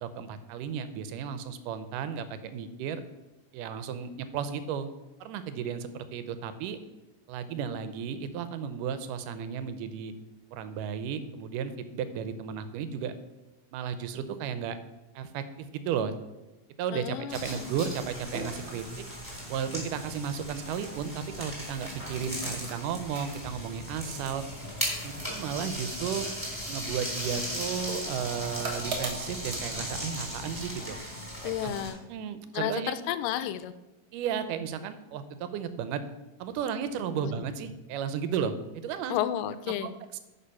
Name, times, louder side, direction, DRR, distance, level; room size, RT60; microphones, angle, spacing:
voice 1, 0.0-3.0 3.5-4.9 5.2-6.8 7.3-10.1 10.5-13.1 13.7-14.8 15.2-16.1 16.8-18.9 19.5-24.4 25.0-26.3 26.7-31.0 31.4-31.8 32.1-32.9 34.1-36.0 36.4-39.2 39.8-40.2, right 7 dB, 85° right, 11 dB, 2.2 m, -34 dB
voice 2, 16.9-17.7 31.4-32.0 32.5-33.7 37.2-37.3 39.1-39.9, left 11 dB, 90° left, 13 dB, 2.2 m, -32 dB
sound 1, 17.3-31.9, equal, 5° left, 3.1 m, -37 dB
sound 2, 18.0-31.0, right 3 dB, 50° right, 1.8 m, -44 dB
10.5 x 4.7 x 5.6 m, 1.0 s
omnidirectional pair, 3.7 m